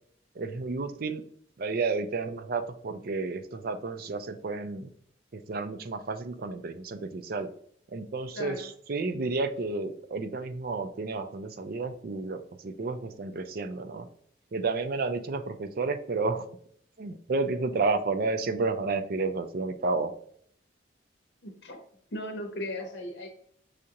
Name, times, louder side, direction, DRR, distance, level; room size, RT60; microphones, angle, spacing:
voice 1, 0.4-1.2 1.6-4.9 5.3-7.5 7.9-14.1 14.5-16.5 17.0-20.1, right 3 dB, 50° right, 9 dB, 0.4 m, -31 dB
voice 2, 21.4-21.8 22.1-23.3, left 1 dB, 65° left, 1 dB, 0.8 m, -37 dB
6.3 x 2.4 x 2.8 m, 0.62 s
head